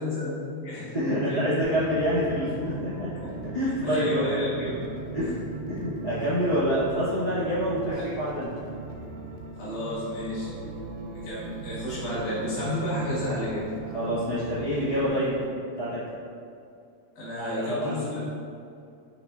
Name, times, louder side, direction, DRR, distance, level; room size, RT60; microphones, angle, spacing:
voice 1, 0.0-1.5 3.2-3.3 3.8-4.8 5.2-5.3 7.9-8.1 9.6-10.5 11.1-13.6 17.2-18.1, left 1 dB, 80° left, -9 dB, 2.8 m, -32 dB
voice 2, 0.9-3.1 3.5-4.3 5.1-5.4 5.7-8.5 13.9-15.3 15.8-16.0 17.4-18.1, equal, 40° left, -13 dB, 0.6 m, -27 dB
sound 1, 1.6-15.5, right 4 dB, 80° right, 2.0 m, -39 dB
5.8 x 2.9 x 2.4 m, 2.5 s
omnidirectional pair, 3.4 m